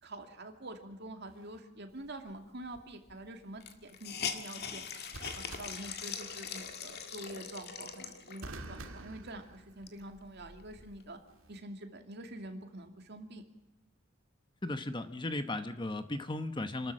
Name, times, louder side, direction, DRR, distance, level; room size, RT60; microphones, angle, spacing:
voice 1, 0.0-4.8 5.3-11.2 11.5-13.5, right 1 dB, 55° right, 5 dB, 2.5 m, -46 dB
sound 1, 1.3-1.6 5.1-6.6 8.4-10.1 11.3-11.6, right 2 dB, 70° right, 2.1 m, -48 dB
Hiss, 2.8-2.9 3.1-3.2 3.6-8.6 9.2-9.3 9.7-11.0, left 7 dB, 50° left, 1.9 m, -42 dB
voice 2, 14.6-16.9, left 2 dB, 20° left, 10 dB, 0.9 m, -36 dB
27.5 x 13.0 x 7.5 m, 0.92 s
head